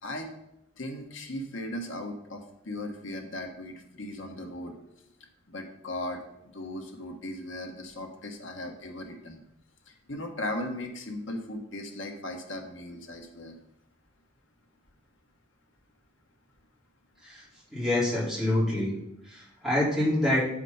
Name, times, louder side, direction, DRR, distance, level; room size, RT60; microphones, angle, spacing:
voice 1, 0.8-4.8 5.5-6.2 6.5-9.4 9.9-13.6, left 1 dB, 75° left, 3 dB, 1.4 m, -37 dB
voice 2, 17.7-18.9 19.3-20.4, left 1 dB, ahead, -8 dB, 3.9 m, -26 dB
9.0 x 5.0 x 5.6 m, 0.81 s
head